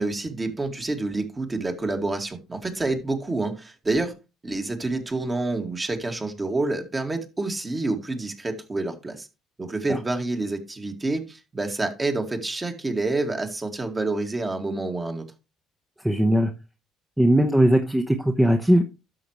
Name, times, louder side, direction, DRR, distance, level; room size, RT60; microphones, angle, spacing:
voice 1, 0.0-4.1 4.4-9.3 9.6-15.3, right 2 dB, 25° right, 2.2 m, -28 dB
voice 2, 16.0-16.5 17.2-18.8, right 1 dB, 5° right, 1.1 m, -19 dB
12.5 x 6.0 x 3.1 m
hypercardioid pair, 55°, 0 cm